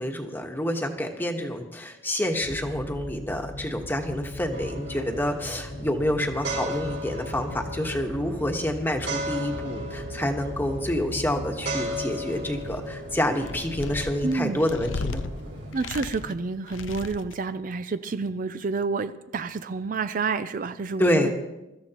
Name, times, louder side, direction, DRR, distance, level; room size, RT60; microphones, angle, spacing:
voice 1, 0.0-15.2 21.0-21.3, left 1 dB, 10° left, 3 dB, 1.3 m, -28 dB
sound 1, 2.4-16.4, left 1 dB, 75° left, 1.7 m, -40 dB
sound 2, 4.5-15.7, equal, 65° right, 5.2 m, -37 dB
sound 3, 12.3-13.0 13.4-15.3 15.7-16.4 16.7-17.4, left 4 dB, 90° left, 0.6 m, -35 dB
voice 2, 14.2-14.6 15.7-21.3, right 4 dB, 45° right, 11 dB, 0.4 m, -29 dB
23.0 x 13.5 x 3.0 m, 0.98 s
head